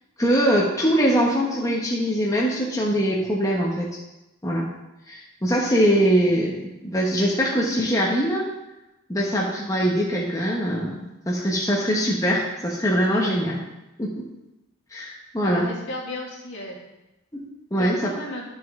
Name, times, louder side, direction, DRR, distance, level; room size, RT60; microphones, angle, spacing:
voice 1, 0.2-3.9 4.4-4.7 5.1-8.4 9.1-13.6 14.0-14.2 14.9-15.7 17.3-17.4 17.7-18.1, equal, 15° left, -4 dB, 1.1 m, -22 dB
voice 2, 15.4-16.8 17.8-18.4, left 1 dB, 60° left, -2 dB, 2.2 m, -34 dB
11.5 x 6.3 x 3.7 m, 0.99 s
head